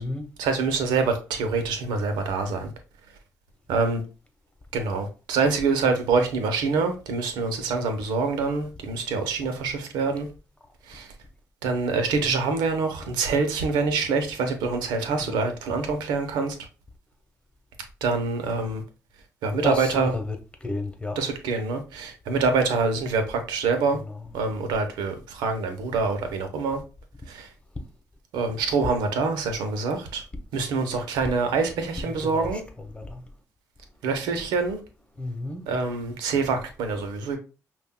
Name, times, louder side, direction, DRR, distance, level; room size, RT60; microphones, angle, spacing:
voice 1, 0.4-2.7 3.7-4.0 4.7-10.3 10.9-11.1 11.6-16.6 18.0-18.8 19.4-20.1 21.2-24.0 24.3-26.8 27.3-27.5 28.3-30.2 30.5-32.6 34.0-34.8 35.7-37.4, right 4 dB, 85° right, 0.8 m, -25 dB
voice 2, 19.6-20.3 20.6-21.2 24.1-24.3 32.2-32.6 32.9-33.2 35.2-35.6, left 2 dB, 15° left, 1.1 m, -31 dB
5.4 x 2.5 x 2.2 m
supercardioid pair, 70°, 7 cm